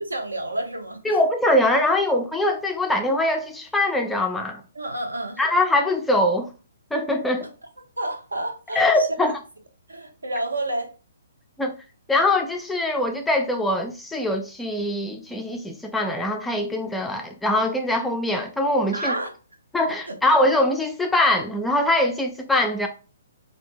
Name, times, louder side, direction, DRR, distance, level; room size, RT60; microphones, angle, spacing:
voice 1, 0.1-1.2 4.7-5.4 8.0-9.4 9.9-10.9 18.9-19.3 20.1-20.2, right 1 dB, 75° right, 0.6 m, -30 dB
voice 2, 1.1-4.6 5.4-6.5 6.9-7.5 8.8-9.3 11.6-11.7 12.1-19.1 19.7-22.9, left 1 dB, 5° left, 0.3 m, -22 dB
2.5 x 2.2 x 2.7 m
figure-of-eight pair, 125°, 0 cm